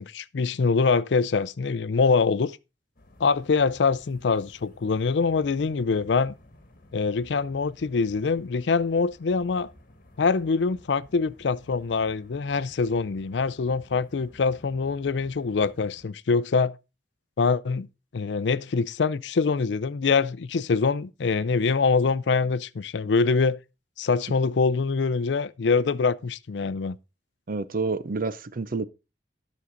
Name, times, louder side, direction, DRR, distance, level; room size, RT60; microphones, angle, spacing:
voice 1, 0.0-2.5 3.2-6.3 6.9-9.7 10.2-16.8 17.4-17.9 18.1-23.6 24.0-26.9, left 4 dB, 75° left, 0.5 m, -24 dB
sound 1, 3.0-16.1, left 1 dB, 50° left, 1.6 m, -53 dB
voice 2, 27.5-28.9, right 3 dB, 50° right, 0.6 m, -28 dB
11.5 x 6.3 x 3.8 m
head